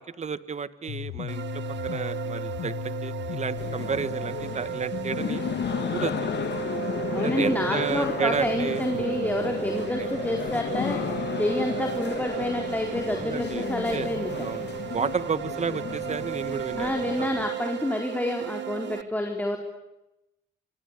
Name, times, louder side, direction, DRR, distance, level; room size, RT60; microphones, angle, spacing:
voice 1, 0.0-2.7 3.0-5.4 5.9-6.3 6.5-6.7 7.1-8.8 13.1-13.7 13.9-14.1 14.3-17.3, right 6 dB, 35° right, 14 dB, 1.6 m, -32 dB
sound 1, 0.9-6.9, left 14 dB, 85° left, 1.1 m, -38 dB
sound 2, 1.3-19.0, right 13 dB, 65° right, 1.5 m, -35 dB
sound 3, 3.6-17.5, left 8 dB, 60° left, 2.6 m, -33 dB
voice 2, 7.1-11.0 11.4-14.5 16.8-19.6, left 1 dB, 10° left, 3 dB, 4.2 m, -28 dB
27.0 x 25.0 x 8.2 m, 0.94 s
cardioid pair, 90°, 20 cm